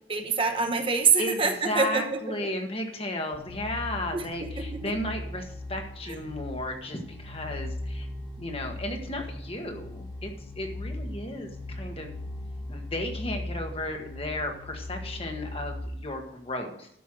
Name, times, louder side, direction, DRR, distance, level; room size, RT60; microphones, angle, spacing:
voice 1, 0.1-2.5 4.1-4.3 4.6-4.7 6.1-6.2, right 5 dB, 30° right, 5 dB, 0.9 m, -25 dB
voice 2, 1.2-8.1 8.4-12.2 12.7-16.9, left 1 dB, 30° left, 3 dB, 1.7 m, -34 dB
sound 1, 3.3-15.8, left 1 dB, ahead, 1.2 m, -38 dB
12.5 x 5.8 x 6.2 m, 0.74 s
head